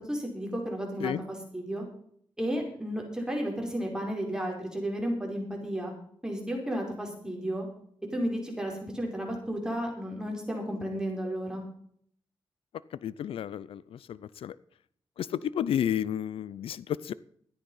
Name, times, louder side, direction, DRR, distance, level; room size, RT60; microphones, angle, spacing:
voice 1, 0.1-1.8 2.4-5.9 6.2-7.7 8.1-11.6, equal, 5° right, 0 dB, 4.9 m, -33 dB
voice 2, 13.0-14.5 15.2-17.1, left 10 dB, 85° left, 20 dB, 0.5 m, -32 dB
13.5 x 10.0 x 5.6 m, 0.64 s
cardioid pair, 80°, 9 cm